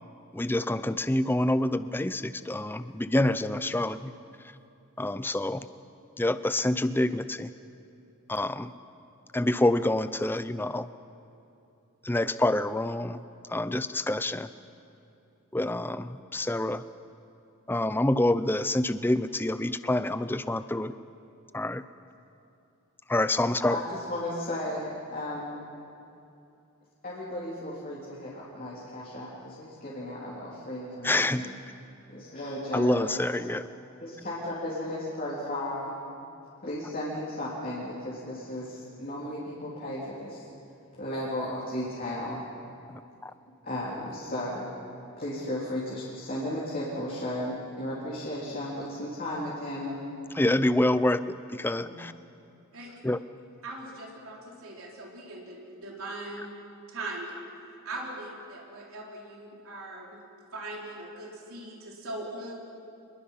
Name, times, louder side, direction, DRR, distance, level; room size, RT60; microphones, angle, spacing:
voice 1, 0.3-4.1 5.0-5.7 6.2-7.5 8.3-8.7 9.3-10.9 12.0-13.2 13.5-14.5 15.5-16.8 17.7-20.9 21.5-21.8 23.1-23.8 31.0-31.5 32.7-33.7 43.2-43.3 50.3-52.1 53.0-53.2, left 1 dB, 10° left, 13 dB, 0.5 m, -27 dB
voice 2, 23.7-25.7 27.0-31.5 32.1-33.2 34.0-36.0 36.6-40.4 41.0-42.4 43.6-44.7 45.2-50.0 51.8-51.9, left 1 dB, 40° left, -7 dB, 3.7 m, -35 dB
voice 3, 53.6-56.5 56.9-57.4 57.9-60.1 60.5-62.5, right 2 dB, 80° right, -2 dB, 3.7 m, -40 dB
26.5 x 21.5 x 5.8 m, 2.7 s
head